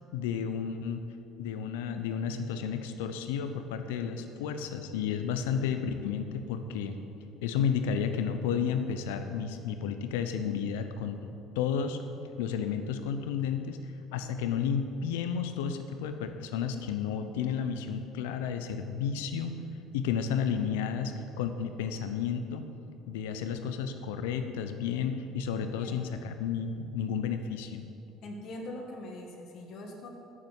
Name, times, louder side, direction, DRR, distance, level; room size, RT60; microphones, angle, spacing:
voice 1, 0.1-1.0 1.4-7.0 7.4-11.3 11.6-12.0 12.4-13.8 14.1-19.5 19.9-22.7 23.1-27.8, left 7 dB, 80° left, 8 dB, 0.8 m, -32 dB
voice 2, 25.6-26.1 28.2-30.1, left 1 dB, 60° left, 2 dB, 2.0 m, -42 dB
8.6 x 7.3 x 8.0 m, 2.7 s
hypercardioid pair, 70°, 0 cm